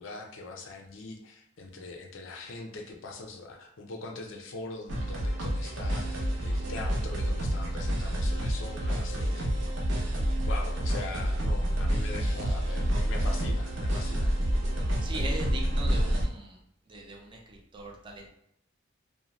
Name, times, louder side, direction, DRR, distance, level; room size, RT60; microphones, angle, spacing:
voice 1, 0.0-9.7 10.4-14.4, left 3 dB, 75° left, 2 dB, 0.4 m, -42 dB
sound 1, 4.9-16.3, equal, 65° right, 0.6 m, -28 dB
voice 2, 15.0-16.6 16.9-18.3, right 2 dB, 25° right, 0 dB, 0.4 m, -40 dB
2.5 x 2.1 x 3.0 m, 0.74 s
head